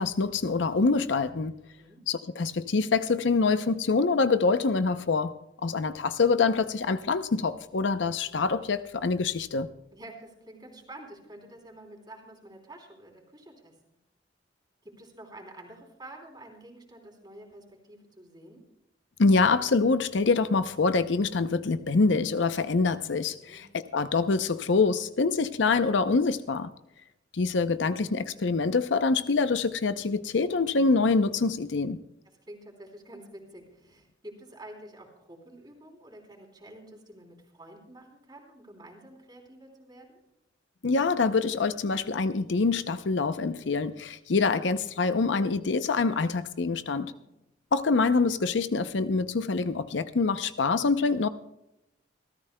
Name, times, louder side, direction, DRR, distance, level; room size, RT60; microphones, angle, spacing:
voice 1, 0.0-1.5 2.1-5.3 5.6-9.7 19.2-26.7 27.3-32.0 40.8-47.1 47.7-51.3, left 4 dB, 75° left, 11 dB, 0.6 m, -25 dB
voice 2, 9.9-13.7 14.8-18.6 23.4-23.6 32.5-40.2 46.8-47.3, right 1 dB, 25° right, 1 dB, 3.2 m, -48 dB
27.5 x 13.5 x 2.2 m, 0.86 s
head